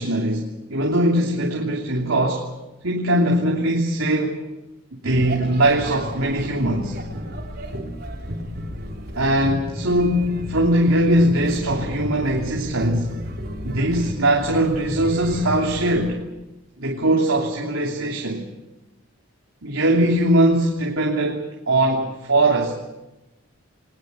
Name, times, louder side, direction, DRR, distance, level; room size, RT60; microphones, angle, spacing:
voice 1, 0.0-2.5 2.8-4.4 5.0-7.0 9.1-13.1 13.6-16.2 16.8-18.5 19.6-22.8, right 1 dB, 75° right, -1 dB, 3.0 m, -21 dB
sound 1, 5.0-16.1, equal, 50° right, 4.0 m, -33 dB
23.0 x 20.0 x 8.3 m, 0.99 s
head